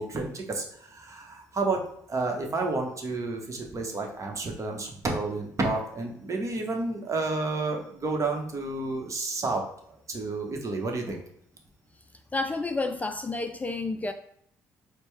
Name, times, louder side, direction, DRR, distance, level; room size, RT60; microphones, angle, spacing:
voice 1, 0.0-1.8 2.1-9.7 10.1-11.2, right 3 dB, 40° right, 2 dB, 1.0 m, -30 dB
voice 2, 12.3-14.1, left 3 dB, 20° left, 7 dB, 0.4 m, -30 dB
4.3 x 2.2 x 3.3 m, 0.67 s
hypercardioid pair, 55°, 8 cm